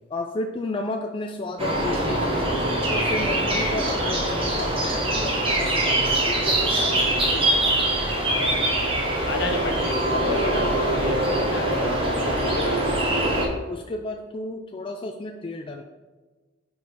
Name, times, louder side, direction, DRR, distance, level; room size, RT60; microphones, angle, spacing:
voice 1, 0.1-7.7 11.0-11.2 13.7-15.8, left 2 dB, 25° left, 3 dB, 0.4 m, -33 dB
sound 1, 1.6-13.5, right 1 dB, 30° right, 1.2 m, -23 dB
voice 2, 8.3-12.9, left 2 dB, 60° left, 3 dB, 1.1 m, -31 dB
5.1 x 4.7 x 5.0 m, 1.2 s
head